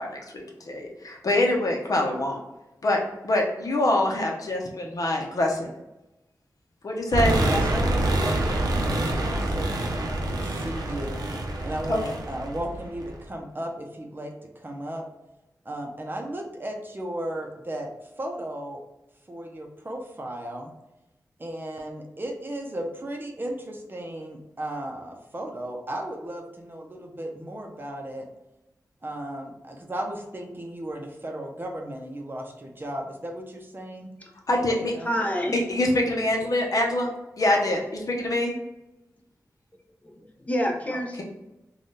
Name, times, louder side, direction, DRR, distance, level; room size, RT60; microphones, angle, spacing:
voice 1, 0.0-2.4 2.8-3.0 3.2-4.6 5.0-5.7 6.8-7.3 11.9-12.0 34.5-34.9 35.5-37.1 37.4-38.5, left 1 dB, 65° left, 0 dB, 0.7 m, -24 dB
sound 1, 7.1-13.2, right 1 dB, 80° right, 0.5 m, -26 dB
voice 2, 7.3-11.2 11.6-15.1 15.6-17.9 18.2-18.8 19.3-20.7 21.4-28.3 29.0-34.1 34.5-35.1, right 1 dB, 30° right, 1 dB, 0.6 m, -35 dB
voice 3, 35.0-35.6 38.4-38.5 40.0-41.2, equal, 20° left, 0 dB, 0.7 m, -28 dB
3.5 x 2.3 x 2.7 m, 0.97 s
wide cardioid pair, 80°, 7 cm